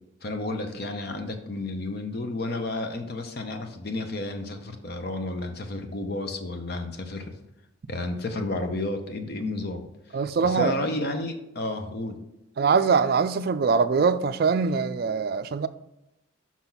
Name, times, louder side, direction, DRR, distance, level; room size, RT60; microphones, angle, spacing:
voice 1, 0.2-7.3 7.9-9.9 10.4-12.2, left 2 dB, 50° left, 0.8 m, -31 dB
voice 2, 10.1-10.7 12.6-15.7, right 5 dB, 50° right, 0.3 m, -23 dB
5.9 x 5.9 x 3.9 m
head